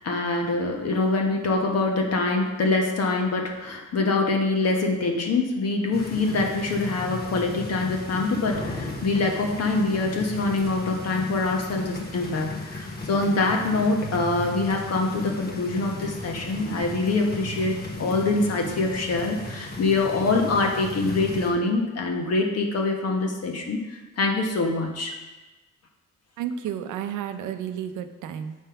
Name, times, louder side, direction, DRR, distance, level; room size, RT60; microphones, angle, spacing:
voice 1, 0.0-25.2, left 3 dB, 55° left, 2 dB, 1.3 m, -25 dB
sound 1, 5.9-21.5, left 1 dB, 30° left, 1.2 m, -36 dB
voice 2, 26.4-28.6, right 9 dB, 80° right, 8 dB, 0.7 m, -32 dB
7.5 x 3.5 x 5.8 m, 1.2 s
cardioid pair, 90°, 30 cm